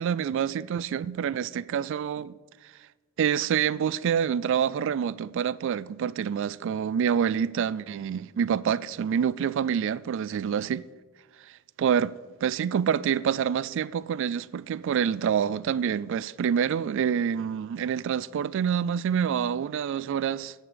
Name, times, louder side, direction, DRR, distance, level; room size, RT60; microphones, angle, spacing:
voice 1, 0.0-2.4 3.2-10.8 11.8-12.1 12.4-20.5, right 8 dB, 60° right, 0.3 m, -27 dB
9.6 x 6.0 x 6.9 m
head